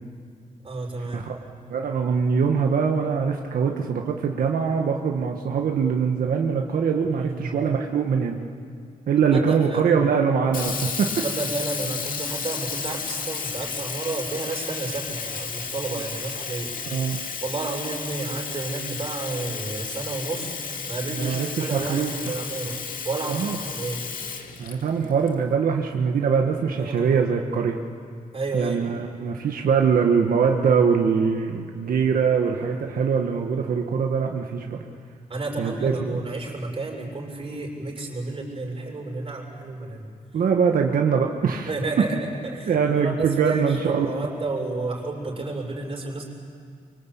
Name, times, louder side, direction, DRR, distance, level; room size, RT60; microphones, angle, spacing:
voice 1, 0.6-1.3 7.0-7.7 9.3-10.1 11.2-16.7 17.4-24.1 26.7-27.1 28.3-28.8 34.6-34.7 35.3-40.1 41.7-42.2 42.4-46.2, right 3 dB, 40° right, 0 dB, 6.8 m, -31 dB
voice 2, 1.7-8.4 9.1-11.1 16.9-17.2 21.1-22.1 23.3-23.6 24.6-27.8 28.5-34.8 35.6-36.2 40.3-41.7 42.7-44.1, right 6 dB, 85° right, 2 dB, 1.6 m, -23 dB
Sink (filling or washing), 10.5-25.3, left 5 dB, 75° left, 2.4 m, -33 dB
25.5 x 24.5 x 8.5 m, 2.2 s
cardioid pair, 100°, 14 cm